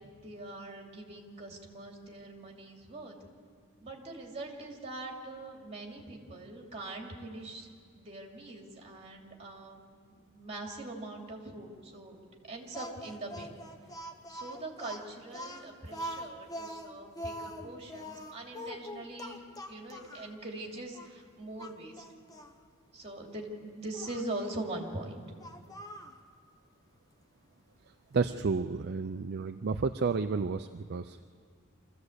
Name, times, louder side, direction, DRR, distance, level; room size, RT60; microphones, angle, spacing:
voice 1, 0.1-3.2 3.8-9.8 10.1-12.2 12.4-13.6 14.3-22.0 22.9-25.3, right 2 dB, 30° right, 1 dB, 2.9 m, -42 dB
Speech, 12.7-20.3 20.9-21.1 21.6-22.5 23.9-24.3 25.4-26.2, equal, 15° left, 1.2 m, -43 dB
voice 2, 28.1-31.2, right 4 dB, 50° right, 8 dB, 0.5 m, -31 dB
25.0 x 15.0 x 8.1 m, 2.1 s
head